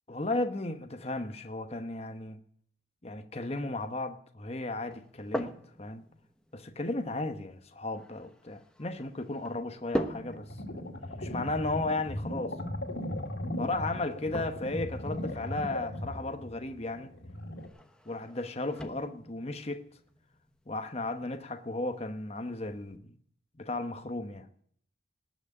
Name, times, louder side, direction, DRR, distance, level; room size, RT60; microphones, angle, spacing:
voice 1, 0.1-2.4 3.0-6.0 6.5-10.8 11.2-12.5 13.6-17.1 18.1-19.8 20.7-23.1 23.6-24.5, left 2 dB, 30° left, 1.1 m, -35 dB
sound 1, 4.9-23.0, equal, 5° left, 1.1 m, -44 dB
sound 2, 10.1-17.7, left 1 dB, 60° left, 2.4 m, -37 dB
19.0 x 6.3 x 9.6 m
head